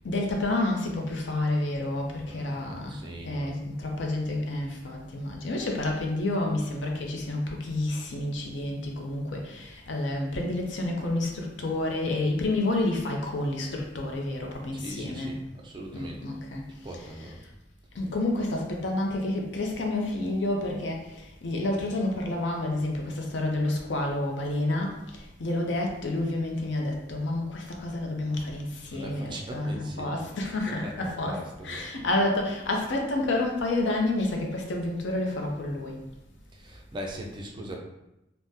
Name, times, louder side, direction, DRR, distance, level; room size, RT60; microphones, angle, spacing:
voice 1, 0.0-3.0 3.2-15.3 15.9-17.4 17.9-36.0, left 2 dB, 65° left, 1 dB, 0.5 m, -29 dB
voice 2, 2.2-3.6 14.7-16.2 16.8-17.4 28.8-30.2 30.7-31.9 36.5-37.8, right 1 dB, 25° right, 1 dB, 0.3 m, -40 dB
3.5 x 2.1 x 2.7 m, 0.90 s
head